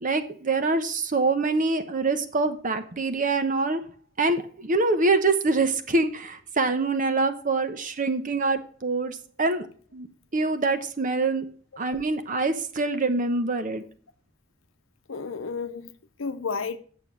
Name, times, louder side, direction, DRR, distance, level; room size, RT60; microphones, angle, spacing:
voice 1, 0.0-3.8 4.2-9.7 9.9-10.1 10.3-11.5 11.8-13.8, right 3 dB, 40° right, 0.9 m, -25 dB
voice 2, 15.1-16.8, left 5 dB, 85° left, 0.7 m, -32 dB
9.0 x 7.0 x 6.1 m
head